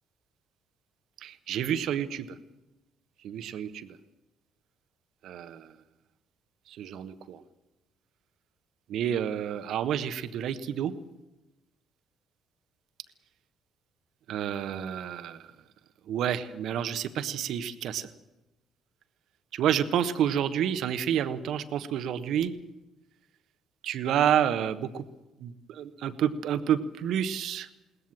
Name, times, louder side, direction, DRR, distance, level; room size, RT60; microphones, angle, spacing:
voice 1, 1.2-2.3 3.2-4.0 5.2-5.7 6.7-7.4 8.9-10.9 14.3-15.4 16.1-18.1 19.5-22.5 23.8-25.0 25.4-27.7, right 9 dB, 65° right, 11 dB, 1.2 m, -29 dB
21.5 x 18.5 x 7.5 m, 0.99 s
hypercardioid pair, 50°, 0 cm